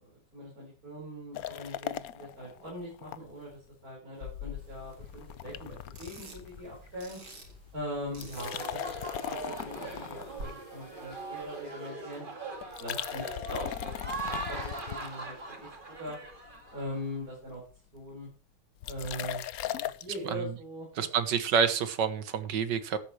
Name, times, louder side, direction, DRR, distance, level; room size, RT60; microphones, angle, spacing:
voice 1, 0.0-7.2 7.7-8.8 9.2-12.2 12.8-16.2 16.7-17.6 17.9-18.3 18.9-20.9, equal, 45° right, -6 dB, 5.8 m, -41 dB
sound 1, 1.4-3.2 3.5-3.6 4.2-7.1 7.4-7.7 8.1-11.4 12.6-15.6 16.1-16.6 16.9-17.0 17.2-17.3 17.4-17.8 18.8-20.2, left 12 dB, 65° left, 0.9 m, -39 dB
sound 2, 4.6-10.4, right 2 dB, 85° right, 4.5 m, -51 dB
sound 3, 8.3-17.1, right 3 dB, 25° right, 2.2 m, -41 dB
voice 2, 20.2-20.5 21.0-23.0, right 7 dB, 65° right, 12 dB, 1.8 m, -28 dB
13.0 x 10.0 x 3.3 m, 0.40 s
omnidirectional pair, 2.1 m